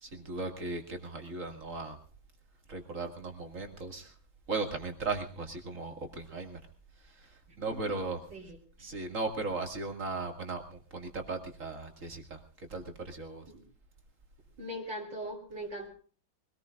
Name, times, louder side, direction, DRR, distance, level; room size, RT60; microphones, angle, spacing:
voice 1, 0.0-2.0 2.7-4.1 4.5-6.6 7.0-8.3 8.8-13.4, right 3 dB, 40° right, 4 dB, 2.5 m, -37 dB
voice 2, 14.6-15.9, equal, 60° right, -1 dB, 3.7 m, -40 dB
24.5 x 19.0 x 2.5 m, 0.40 s
omnidirectional pair, 2.3 m